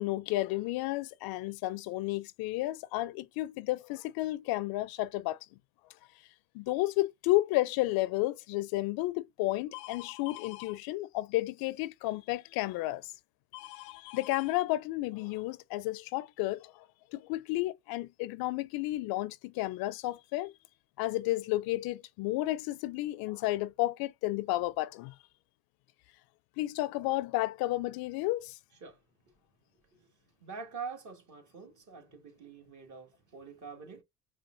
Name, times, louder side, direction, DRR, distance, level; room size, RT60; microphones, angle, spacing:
voice 1, 0.0-5.4 6.5-13.1 13.5-16.7 17.1-20.5 21.0-25.1 26.6-28.6, left 17 dB, 65° left, 0.5 m, -32 dB
voice 2, 30.4-34.0, right 5 dB, 45° right, 1.8 m, -45 dB
5.5 x 2.3 x 2.6 m
hypercardioid pair, 70°, 40 cm